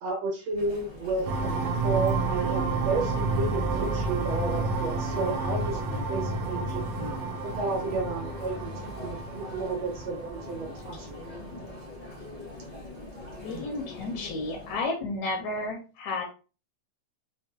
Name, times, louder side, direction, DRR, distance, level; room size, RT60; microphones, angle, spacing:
voice 1, 0.0-5.8 6.1-6.8 7.4-11.3, right 3 dB, 70° right, 0 dB, 1.7 m, -32 dB
Chatter, 0.5-14.9, left 2 dB, 55° left, 0.4 m, -42 dB
sound 1, 1.3-11.8, right 3 dB, 85° right, 2.1 m, -30 dB
voice 2, 13.4-16.2, left 2 dB, 80° left, 3 dB, 1.7 m, -32 dB
5.6 x 2.8 x 2.2 m, 0.34 s
omnidirectional pair, 3.6 m